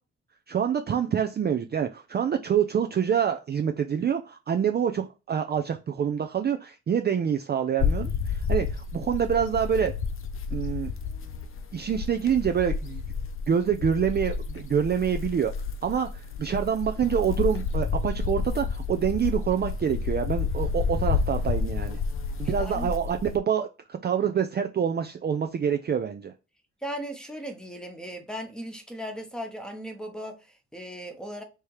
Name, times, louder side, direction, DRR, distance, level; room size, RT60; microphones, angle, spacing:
voice 1, 0.5-9.9 10.5-10.9 11.7-13.0 13.5-15.5 15.8-22.0 22.4-26.3, right 8 dB, 35° right, 0.5 m, -26 dB
sound 1, 7.8-23.4, left 5 dB, 45° left, 0.7 m, -30 dB
voice 2, 22.4-22.9 26.8-31.4, equal, ahead, 1.1 m, -37 dB
3.4 x 2.9 x 4.7 m
cardioid pair, 90°, 30 cm